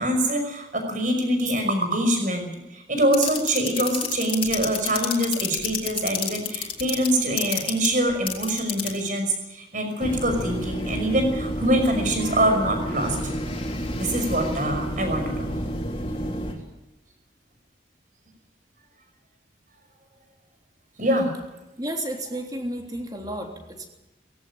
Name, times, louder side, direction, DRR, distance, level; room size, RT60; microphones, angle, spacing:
voice 1, 0.0-13.2 14.0-15.5 21.0-21.3, right 1 dB, 45° right, 5 dB, 5.7 m, -24 dB
sound 1, 3.1-9.0 10.0-16.5, left 2 dB, 30° left, 3.6 m, -29 dB
voice 2, 21.8-23.9, right 1 dB, 20° right, 3 dB, 3.3 m, -32 dB
19.5 x 16.5 x 8.7 m, 1.0 s
head